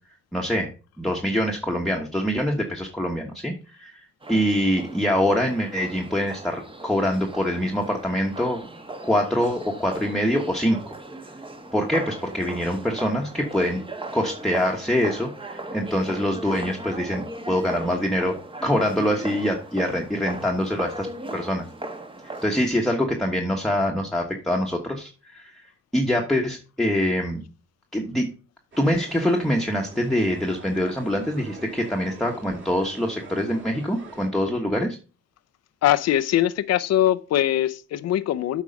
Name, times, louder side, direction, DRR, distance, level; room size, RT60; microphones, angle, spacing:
voice 1, 0.3-0.7 1.0-4.0 4.3-8.6 9.0-10.9 11.7-13.8 14.1-18.4 18.6-21.1 21.3-21.7 22.4-25.5 25.9-27.4 27.9-28.3 28.8-35.0, equal, ahead, 1.2 m, -24 dB
sound 1, 4.2-22.7, right 2 dB, 15° right, 1.1 m, -38 dB
sound 2, 28.7-34.3, right 2 dB, 40° right, 2.8 m, -43 dB
voice 2, 35.8-38.6, left 12 dB, 55° left, 0.6 m, -22 dB
8.4 x 4.8 x 5.2 m
cardioid pair, 90°, 30 cm